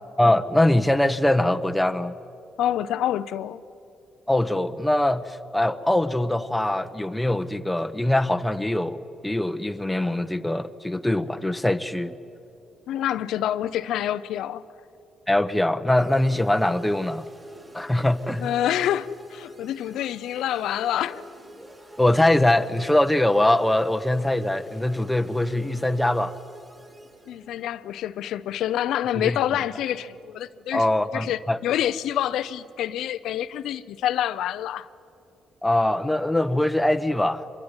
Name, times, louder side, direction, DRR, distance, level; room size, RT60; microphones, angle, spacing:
voice 1, 0.2-2.1 4.3-9.0 9.2-12.2 15.3-17.2 17.7-18.5 22.0-26.3 29.2-29.4 30.7-31.6 35.6-37.4, left 1 dB, 5° left, 1.1 m, -22 dB
voice 2, 2.6-3.6 12.9-14.6 18.4-21.3 27.3-30.8 31.1-34.9, left 11 dB, 80° left, 0.7 m, -27 dB
sound 1, 15.9-27.8, right 1 dB, 20° right, 6.1 m, -47 dB
25.0 x 22.5 x 9.8 m
cardioid pair, 90°, 0 cm